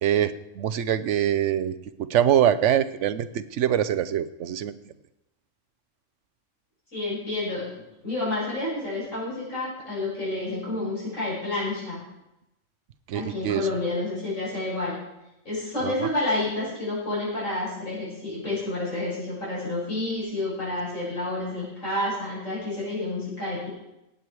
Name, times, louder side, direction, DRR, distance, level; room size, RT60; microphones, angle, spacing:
voice 1, 0.0-4.7 13.1-13.7 15.8-16.1, right 10 dB, 70° right, 13 dB, 1.0 m, -24 dB
voice 2, 6.9-12.0 13.1-15.0 15.4-23.7, left 2 dB, 80° left, -7 dB, 6.5 m, -29 dB
16.5 x 8.3 x 4.7 m, 0.91 s
omnidirectional pair, 1.3 m